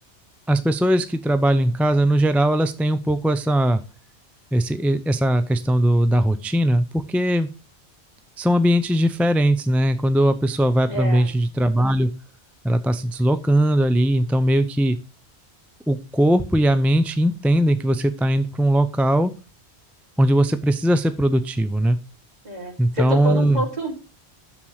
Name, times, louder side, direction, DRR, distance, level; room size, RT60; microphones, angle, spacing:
voice 1, 0.5-3.8 4.5-7.5 8.4-12.1 12.6-15.0 15.9-19.3 20.2-22.0 22.8-23.6, right 1 dB, ahead, 11 dB, 0.3 m, -19 dB
voice 2, 10.8-11.3 22.4-23.9, equal, 40° right, 0 dB, 3.1 m, -28 dB
7.2 x 6.7 x 6.3 m, 0.33 s
omnidirectional pair, 1.1 m